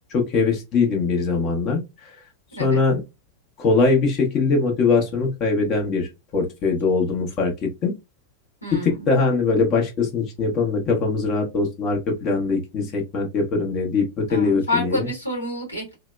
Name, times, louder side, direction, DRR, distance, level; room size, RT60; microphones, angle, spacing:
voice 1, 0.1-1.8 2.6-3.0 3.6-7.9 8.8-15.1, left 4 dB, 35° left, 0.7 m, -22 dB
voice 2, 2.5-2.8 8.6-9.1 14.3-15.9, left 1 dB, 85° left, 1.0 m, -28 dB
2.7 x 2.1 x 2.2 m
figure-of-eight pair, 90°, 0 cm